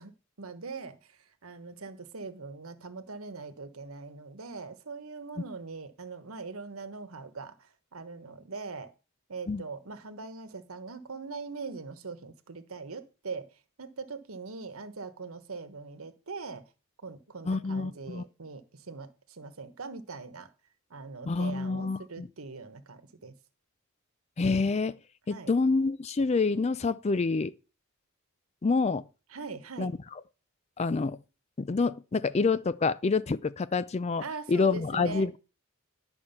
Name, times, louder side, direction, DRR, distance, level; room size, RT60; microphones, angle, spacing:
voice 1, 0.0-8.9 9.3-13.5 13.8-16.6 17.0-20.5 20.9-23.4 25.3-25.5 29.3-29.9 34.2-35.4, right 4 dB, 80° right, 1.2 m, -41 dB
voice 2, 17.4-18.2 21.3-22.3 24.4-25.0 25.3-27.5 28.6-29.0 29.8-29.9 30.8-31.2 31.6-35.4, left 4 dB, 30° left, 0.4 m, -27 dB
11.0 x 6.2 x 5.6 m
head